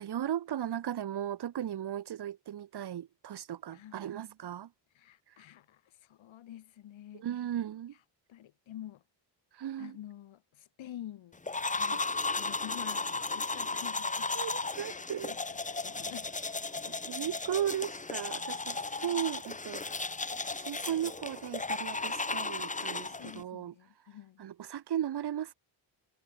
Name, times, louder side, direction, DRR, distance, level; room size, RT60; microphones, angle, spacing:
voice 1, 0.0-4.7 5.3-5.4 7.1-7.9 9.5-10.0 14.3-15.3 17.1-20.1 20.5-23.7 24.0-25.5, right 10 dB, 55° right, 2.0 m, -36 dB
voice 2, 3.7-4.1 4.9-7.3 7.9-8.0 8.3-9.0 9.8-11.4 11.7-14.3 14.8-16.3 23.2-24.4, left 12 dB, 80° left, 7.5 m, -48 dB
sound 1, 11.5-23.4, left 3 dB, 15° left, 1.8 m, -35 dB
cardioid pair, 130°, 46 cm